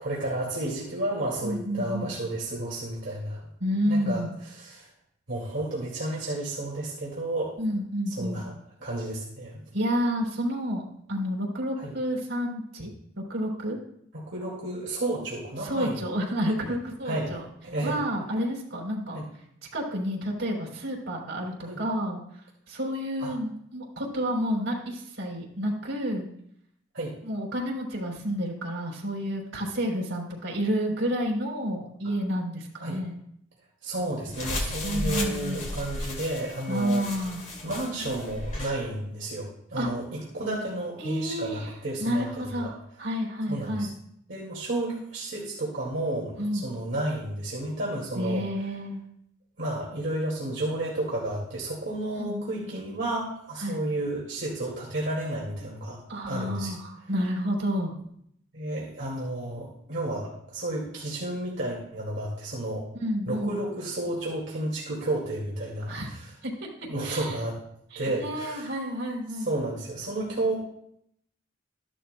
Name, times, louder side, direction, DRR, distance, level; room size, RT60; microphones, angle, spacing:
voice 1, 0.0-3.4 3.9-4.9 5.3-7.5 8.1-8.5 8.8-9.6 11.8-11.9 14.1-16.0 17.0-17.3 17.6-18.0 19.1-19.2 21.6-21.8 23.2-23.3 26.9-27.1 32.8-33.0 33.8-37.1 37.6-42.7 43.5-43.9 44.3-48.5 49.6-56.7 58.5-62.9 63.3-66.3 66.8-67.6 68.0-68.7 69.3-70.6, right 1 dB, 65° right, -4 dB, 2.2 m, -32 dB
voice 2, 1.4-2.1 3.6-4.3 7.6-8.4 9.7-12.9 13.2-13.8 15.6-17.4 17.8-19.2 19.7-22.2 22.7-26.3 27.2-33.2 34.8-35.7 36.7-37.4 39.8-39.9 41.0-41.7 42.0-43.9 46.4-46.7 48.2-49.0 52.2-52.4 52.7-52.8 53.6-53.8 56.1-57.9 62.9-63.6 65.9-66.1 66.4-66.7 67.0-67.4 67.9-69.5, equal, 90° right, -3 dB, 3.4 m, -30 dB
sound 1, 34.3-38.8, left 1 dB, 40° left, 2.2 m, -34 dB
14.0 x 11.0 x 2.2 m, 0.71 s
head